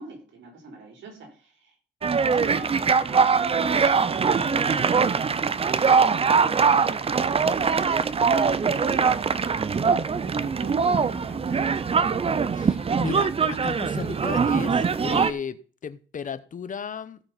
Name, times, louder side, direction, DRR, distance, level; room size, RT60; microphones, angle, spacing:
voice 1, 0.0-1.8 2.0-5.2 10.2-12.0, right 3 dB, 70° right, 3.9 m, -42 dB
sound 1, 2.0-15.3, right 5 dB, 30° right, 0.6 m, -22 dB
voice 2, 12.5-14.7 15.0-17.2, left 6 dB, 40° left, 0.8 m, -34 dB
16.0 x 5.8 x 4.1 m
cardioid pair, 90°, 20 cm